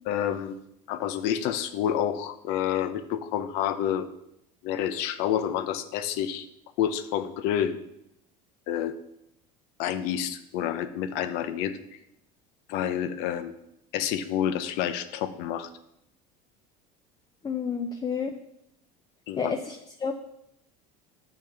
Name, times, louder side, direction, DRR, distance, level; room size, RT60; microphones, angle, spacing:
voice 1, 0.1-0.6 0.9-4.1 4.6-6.5 6.8-7.8 8.7-8.9 9.8-11.7 12.7-13.5 13.9-15.7 19.3-19.5, left 10 dB, 70° left, 11 dB, 0.8 m, -28 dB
voice 2, 17.4-18.3 19.4-20.1, left 6 dB, 20° left, 5 dB, 0.6 m, -30 dB
7.1 x 6.0 x 6.0 m, 0.80 s
supercardioid pair, 100°, 17 cm